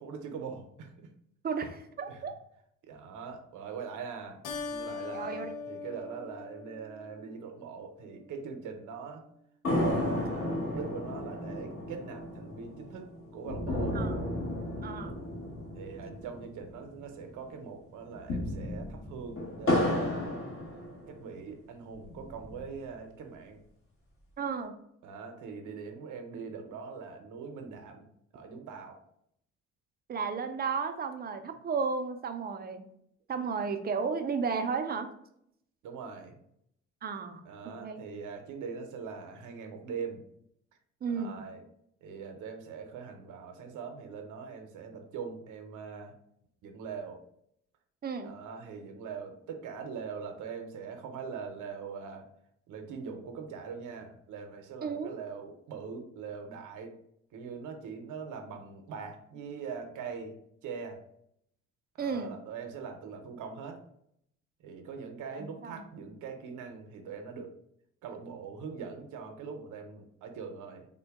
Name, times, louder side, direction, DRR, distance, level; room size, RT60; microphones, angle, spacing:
voice 1, 0.0-1.1 2.1-2.2 2.9-9.2 9.8-13.1 13.3-14.0 14.8-15.1 15.7-20.3 21.1-23.6 25.0-28.1 28.3-29.0 35.8-36.4 37.4-40.2 41.1-41.6 42.0-46.1 46.6-47.2 48.2-52.2 52.7-56.9 57.3-60.3 60.6-61.0 62.0-63.8 64.6-67.5 68.0-70.9, right 5 dB, 80° right, 4 dB, 0.7 m, -42 dB
voice 2, 1.4-2.3 5.1-5.5 13.9-14.2 14.8-15.2 24.4-24.7 30.1-32.8 33.3-35.1 37.0-38.0 41.0-41.4 48.0-48.3 54.8-55.2 62.0-62.4 65.3-65.8, right 5 dB, 30° right, 7 dB, 0.5 m, -34 dB
Keyboard (musical), 4.4-7.3, left 4 dB, 85° left, 0.6 m, -40 dB
sound 1, 9.6-17.2 17.5-17.6 18.1-21.4 21.9-22.9, left 1 dB, 45° left, 1.2 m, -33 dB
3.6 x 2.2 x 3.4 m, 0.72 s
cardioid pair, 90°, 30 cm